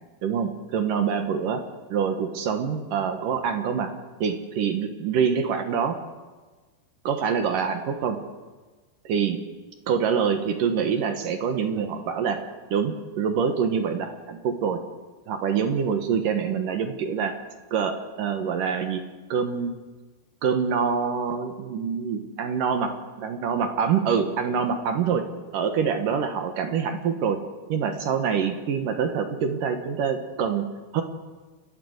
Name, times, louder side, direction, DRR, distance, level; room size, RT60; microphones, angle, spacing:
voice 1, 0.2-1.6 1.9-3.9 4.2-6.0 7.0-8.2 9.0-9.4 9.9-12.4 12.7-14.8 15.3-17.3 17.7-19.0 19.3-19.7 20.4-25.3 25.5-27.4 27.7-30.7 30.9-31.0, right 6 dB, 65° right, 7 dB, 2.5 m, -25 dB
29.5 x 12.0 x 8.0 m, 1.3 s
omnidirectional pair, 4.9 m